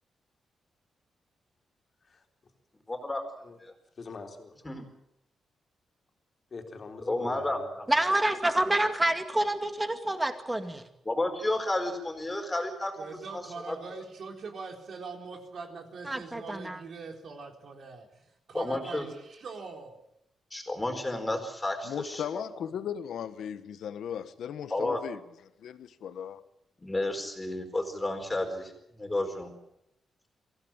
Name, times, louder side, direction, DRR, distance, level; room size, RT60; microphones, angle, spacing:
voice 1, 2.9-3.2 3.6-3.7 4.6-4.9 7.1-7.8 11.0-14.0 18.5-19.1 20.5-22.4 24.7-25.0 26.8-28.7 29.0-29.5, left 2 dB, 15° left, 4.5 m, -32 dB
voice 2, 4.0-4.8 6.5-8.3, left 4 dB, 35° left, 3.9 m, -45 dB
voice 3, 7.9-10.8 16.1-16.8, right 1 dB, 10° right, 2.2 m, -27 dB
voice 4, 13.0-20.0, right 4 dB, 55° right, 3.9 m, -42 dB
voice 5, 21.8-25.2 25.6-26.4, left 8 dB, 80° left, 1.4 m, -37 dB
24.0 x 16.0 x 9.0 m
wide cardioid pair, 155°, 0 cm